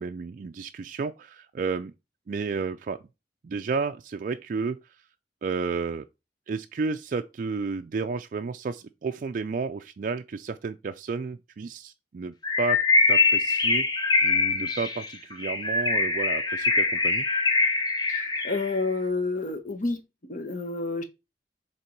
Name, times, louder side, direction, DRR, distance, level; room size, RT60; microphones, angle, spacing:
voice 1, 0.0-1.9 2.3-3.0 3.4-4.8 5.4-6.1 6.5-12.8 13.1-13.8 14.2-17.3, right 4 dB, 45° right, 0.3 m, -32 dB
Bird, 12.4-18.7, left 3 dB, 25° left, 0.8 m, -23 dB
voice 2, 18.1-20.0 20.3-21.0, left 3 dB, 45° left, 1.1 m, -29 dB
6.8 x 3.5 x 4.5 m
head